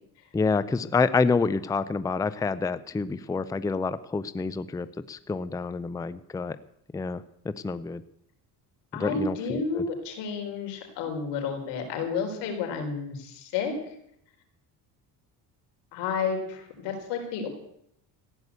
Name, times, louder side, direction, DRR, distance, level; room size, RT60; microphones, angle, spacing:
voice 1, 0.3-6.6 6.9-8.0 9.0-9.8, left 4 dB, 10° left, 15 dB, 0.5 m, -28 dB
voice 2, 8.9-13.7 15.9-17.5, left 5 dB, 85° left, 4 dB, 4.3 m, -31 dB
15.0 x 9.7 x 8.2 m, 0.74 s
cardioid pair, 115°, 41 cm